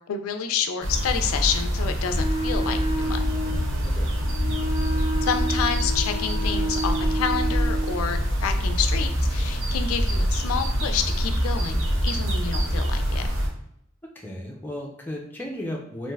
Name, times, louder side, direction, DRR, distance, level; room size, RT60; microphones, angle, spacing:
voice 1, 0.1-3.2 5.2-13.2, left 7 dB, 85° left, 7 dB, 0.3 m, -29 dB
sound 1, 0.8-13.5, equal, 65° right, 0.6 m, -25 dB
Wind instrument woodwind instrument, 2.1-8.0, right 1 dB, 30° right, 1.2 m, -31 dB
voice 2, 14.2-16.1, left 1 dB, 10° left, -2 dB, 0.4 m, -34 dB
3.2 x 2.5 x 2.2 m, 0.75 s
head